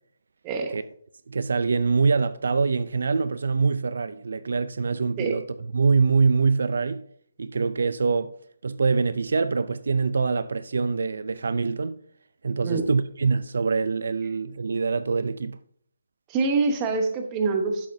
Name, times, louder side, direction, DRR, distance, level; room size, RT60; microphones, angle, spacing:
voice 1, 0.4-0.8 5.2-5.4 12.6-12.8 16.3-17.9, right 4 dB, 15° right, 1.0 m, -25 dB
voice 2, 1.3-5.4 5.7-7.0 7.4-8.3 8.6-12.0 12.4-15.6, right 4 dB, 70° right, 0.4 m, -24 dB
11.0 x 7.2 x 2.7 m
hypercardioid pair, 170°, 0 cm